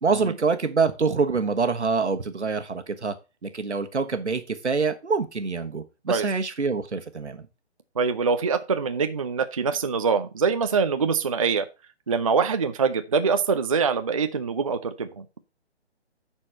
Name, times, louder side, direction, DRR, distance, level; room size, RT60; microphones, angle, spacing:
voice 1, 0.0-3.1 3.4-7.5, right 4 dB, 75° right, 1.4 m, -25 dB
voice 2, 8.0-11.7 12.1-15.2, right 5 dB, 30° right, 0.4 m, -24 dB
10.0 x 4.5 x 4.3 m
figure-of-eight pair, 140°, 34 cm